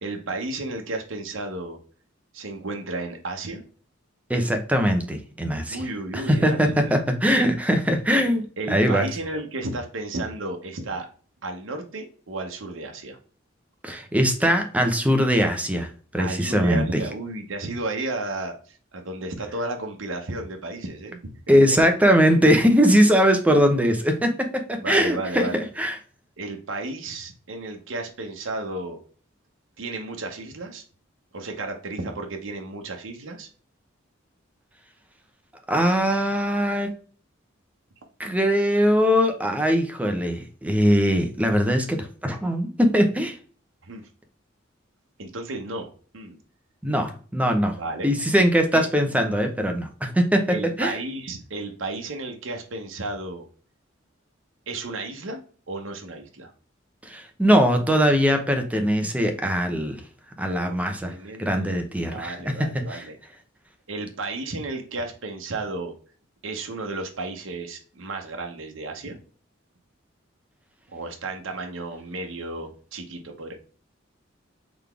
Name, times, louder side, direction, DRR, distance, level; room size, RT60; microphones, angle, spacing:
voice 1, 0.0-1.8 2.3-3.6 5.7-7.0 8.6-11.1 11.4-13.2 16.2-21.2 24.8-25.6 26.4-29.0 29.8-30.8 31.3-33.5 43.8-44.0 45.2-45.9 46.1-46.4 47.7-48.1 48.7-48.8 50.5-53.5 54.7-56.5 60.6-61.7 62.0-63.2 63.9-65.9 66.4-69.2 70.9-73.5, right 2 dB, 70° right, 3 dB, 0.9 m, -33 dB
voice 2, 4.3-5.9 6.1-8.4 8.7-9.1 13.8-17.0 21.5-25.9 35.7-36.9 38.2-43.4 46.8-47.8 48.0-50.9 57.0-60.0 60.4-61.1 61.4-63.1, equal, 5° right, 5 dB, 0.7 m, -21 dB
4.0 x 3.4 x 3.4 m, 0.41 s
head